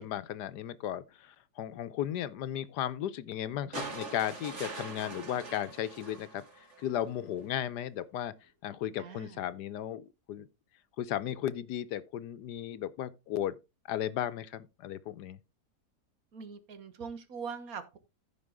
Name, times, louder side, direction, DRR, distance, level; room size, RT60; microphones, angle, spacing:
voice 1, 0.0-8.3 8.6-10.5 11.0-13.6 13.9-15.4, left 11 dB, 85° left, 1.4 m, -35 dB
sound 1, 3.7-7.0 8.4-8.5, right 2 dB, 45° right, 2.5 m, -42 dB
voice 2, 9.0-9.4 16.3-18.0, right 5 dB, 60° right, 1.6 m, -42 dB
15.0 x 5.2 x 3.6 m
omnidirectional pair, 1.7 m